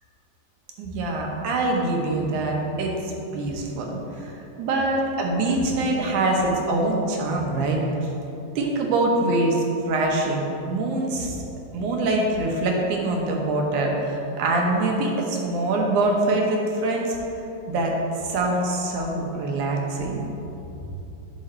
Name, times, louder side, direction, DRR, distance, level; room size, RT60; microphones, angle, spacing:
voice 1, 0.8-8.1 8.6-11.4 11.7-17.2 17.7-17.9 18.2-20.2, right 2 dB, 75° right, 0 dB, 2.5 m, -24 dB
8.8 x 6.5 x 4.3 m, 2.9 s
omnidirectional pair, 3.6 m